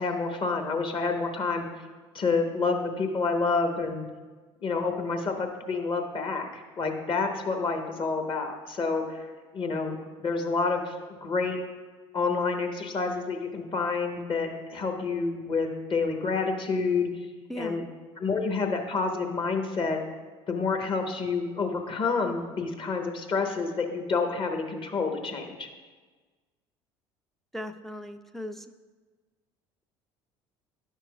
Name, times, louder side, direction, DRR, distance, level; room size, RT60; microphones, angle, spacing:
voice 1, 0.0-1.7 2.1-4.1 4.6-9.3 9.5-11.6 12.1-17.1 17.6-17.8 18.2-20.0 20.5-25.7, left 4 dB, 40° left, 4 dB, 1.0 m, -28 dB
voice 2, 27.5-28.7, left 1 dB, ahead, 7 dB, 0.3 m, -38 dB
10.0 x 5.8 x 2.3 m, 1.4 s
hypercardioid pair, 65°, 13 cm